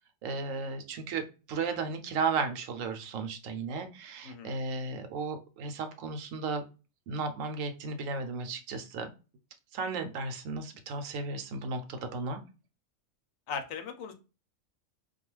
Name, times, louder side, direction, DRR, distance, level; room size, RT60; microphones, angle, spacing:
voice 1, 0.2-6.6 7.1-9.1 9.7-12.4, right 4 dB, 75° right, 7 dB, 0.9 m, -34 dB
voice 2, 4.2-4.6 13.5-14.1, left 6 dB, 80° left, 7 dB, 1.0 m, -38 dB
2.3 x 2.3 x 3.0 m, 0.31 s
omnidirectional pair, 1.4 m